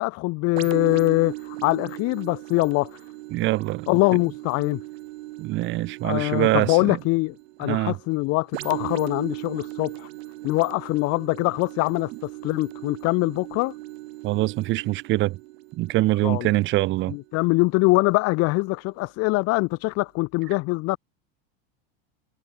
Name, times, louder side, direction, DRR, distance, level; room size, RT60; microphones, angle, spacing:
voice 1, 0.0-3.0 3.9-4.8 6.0-10.1 10.4-13.7 16.2-16.5 17.1-21.0, left 24 dB, 50° left, 2.4 m, -23 dB
sound 1, 0.6-18.1 18.6-18.8, right 19 dB, 80° right, 3.9 m, -38 dB
voice 2, 3.3-3.9 5.4-7.0 7.6-7.9 14.2-15.4 15.8-17.2, right 18 dB, 40° right, 0.8 m, -24 dB
supercardioid pair, 145°, 31 cm